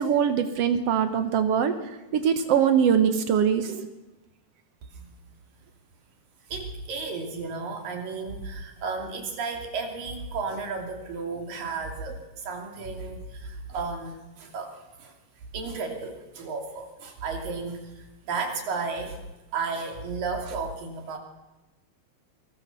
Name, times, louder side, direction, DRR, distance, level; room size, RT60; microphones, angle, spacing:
voice 1, 0.0-1.7 2.1-3.9, right 8 dB, 90° right, 8 dB, 1.3 m, -22 dB
voice 2, 6.5-15.1 15.5-19.2 19.5-21.2, right 4 dB, 60° right, 3 dB, 4.4 m, -33 dB
24.5 x 22.0 x 7.0 m, 1.1 s
omnidirectional pair, 4.6 m